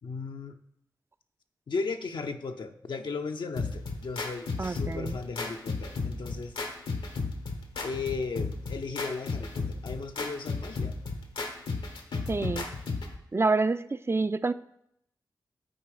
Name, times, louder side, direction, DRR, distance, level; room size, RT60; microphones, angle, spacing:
voice 1, 0.0-0.6 1.7-6.6 7.8-11.0, left 4 dB, 65° left, 5 dB, 0.6 m, -36 dB
sound 1, 3.6-13.2, left 3 dB, 85° left, 1.0 m, -34 dB
voice 2, 4.6-5.2 12.3-12.7 13.3-14.5, right 3 dB, 30° right, 13 dB, 0.4 m, -27 dB
10.0 x 4.3 x 4.9 m, 0.75 s
cardioid pair, 45°, 8 cm